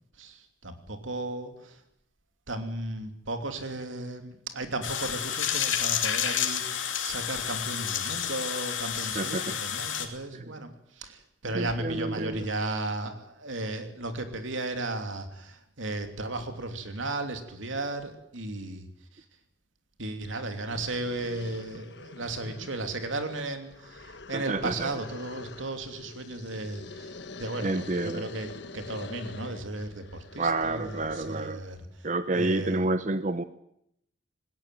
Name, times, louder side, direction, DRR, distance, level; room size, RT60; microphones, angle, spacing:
voice 1, 0.2-1.8 2.5-19.2 20.0-32.9, right 2 dB, 85° right, 7 dB, 3.0 m, -35 dB
sound 1, 4.8-10.1, left 9 dB, 85° left, 2.7 m, -30 dB
voice 2, 9.2-9.5 11.5-12.4 24.3-24.9 27.6-28.2 30.4-31.6 32.0-33.4, right 2 dB, 40° right, 12 dB, 0.7 m, -29 dB
sound 2, 20.7-31.5, left 3 dB, 60° left, 1.2 m, -45 dB
19.5 x 18.0 x 9.2 m, 0.76 s
head